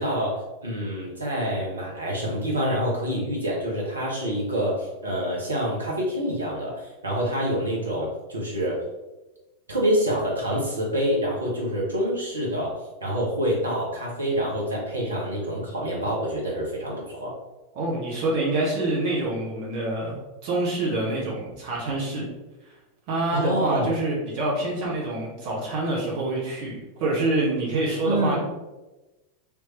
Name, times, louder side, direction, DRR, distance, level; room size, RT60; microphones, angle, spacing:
voice 1, 0.0-8.8 9.7-17.3 23.3-23.9 28.0-28.4, equal, 75° right, -3 dB, 0.9 m, -27 dB
voice 2, 17.7-22.3 22.6-22.7 23.1-28.4, right 2 dB, 45° right, -4 dB, 1.2 m, -26 dB
3.5 x 3.0 x 3.0 m, 1.1 s
figure-of-eight pair, 90°, 0 cm